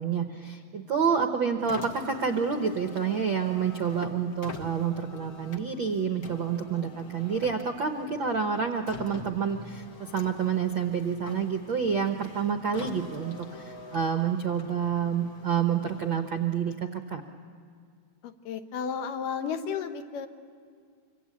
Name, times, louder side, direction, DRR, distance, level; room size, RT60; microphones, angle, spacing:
voice 1, 0.0-17.2, right 6 dB, 70° right, 5 dB, 1.1 m, -28 dB
Car, 1.6-17.0, left 4 dB, 60° left, 0.9 m, -46 dB
voice 2, 18.2-20.3, left 7 dB, 85° left, 8 dB, 2.7 m, -33 dB
26.0 x 25.0 x 8.6 m, 2.2 s
omnidirectional pair, 3.7 m